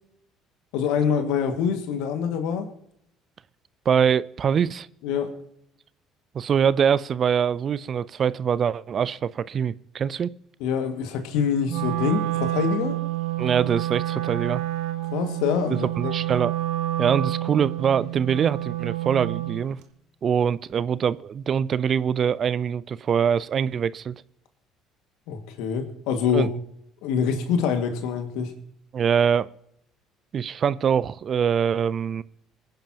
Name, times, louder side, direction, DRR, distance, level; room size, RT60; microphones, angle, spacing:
voice 1, 0.7-2.7 5.0-5.3 10.6-13.0 15.1-16.1 25.3-26.5 27.0-28.6, left 7 dB, 65° left, 7 dB, 1.9 m, -25 dB
voice 2, 3.9-4.9 6.3-10.3 13.4-14.6 16.0-16.5 17.0-19.8 20.2-24.1 26.3-26.5 28.9-29.5 30.3-32.2, right 7 dB, 45° right, 19 dB, 0.5 m, -23 dB
Wind instrument woodwind instrument, 11.7-19.7, right 15 dB, 70° right, 1.4 m, -28 dB
25.0 x 10.5 x 2.9 m, 0.75 s
hypercardioid pair, 55°, 0 cm